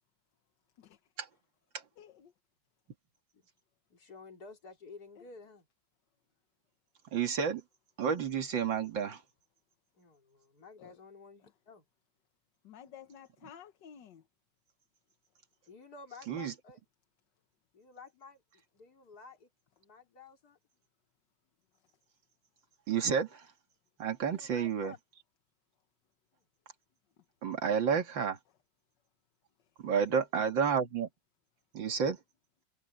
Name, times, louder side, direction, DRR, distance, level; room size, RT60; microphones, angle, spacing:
voice 1, 2.0-2.3 10.8-10.9 12.6-14.2, left 8 dB, 70° left, 1.7 m, -52 dB
voice 2, 3.9-5.7 9.9-11.8 15.7-16.8 17.7-18.4 18.7-19.5 19.8-20.6 24.2-25.0 29.8-30.2, left 4 dB, 55° left, 4.1 m, -52 dB
voice 3, 7.1-7.6 8.0-9.2 16.3-16.5 22.9-23.5 24.0-24.9 27.4-28.4 29.8-31.1 31.7-32.2, right 6 dB, 90° right, 2.7 m, -30 dB
omnidirectional pair, 2.0 m